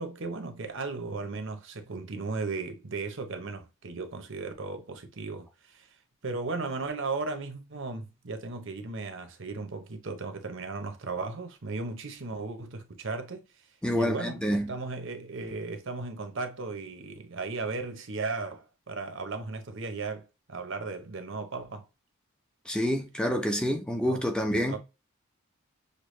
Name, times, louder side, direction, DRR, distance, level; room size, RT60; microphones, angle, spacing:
voice 1, 0.0-5.9 6.2-13.5 13.9-21.9 24.0-24.2 24.7-24.8, right 3 dB, 60° right, 0.9 m, -36 dB
voice 2, 13.8-14.7 22.7-24.8, equal, 5° left, 0.6 m, -28 dB
6.6 x 2.3 x 3.2 m
head